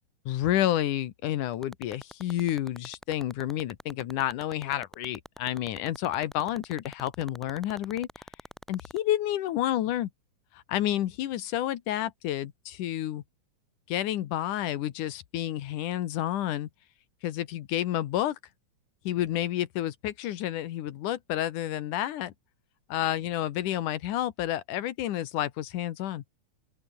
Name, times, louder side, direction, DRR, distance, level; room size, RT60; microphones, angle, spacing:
voice 1, 0.3-8.2 8.7-10.1 10.5-13.2 13.9-16.7 17.2-18.4 19.0-22.3 22.9-26.2, left 12 dB, 75° left, 2.7 m, -30 dB
sound 1, 1.5-9.0, equal, ahead, 6.3 m, -43 dB
open air
omnidirectional pair, 3.6 m